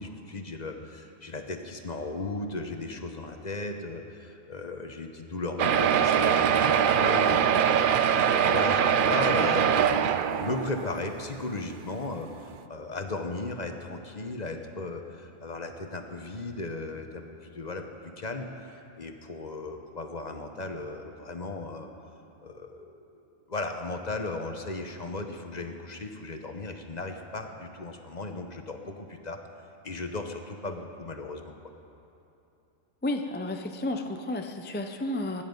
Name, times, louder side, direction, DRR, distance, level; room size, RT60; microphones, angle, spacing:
voice 1, 0.0-17.9 18.2-18.5 19.0-21.9 22.4-23.0 23.5-29.4 29.8-31.6, left 3 dB, 35° left, 5 dB, 1.0 m, -36 dB
sound 1, 5.6-11.0 11.7-11.8 12.1-12.2 12.5-12.6, right 8 dB, 60° right, 0.5 m, -23 dB
voice 2, 33.0-35.4, left 1 dB, 15° left, 5 dB, 0.4 m, -32 dB
23.5 x 10.0 x 5.3 m, 2.8 s
omnidirectional pair, 1.3 m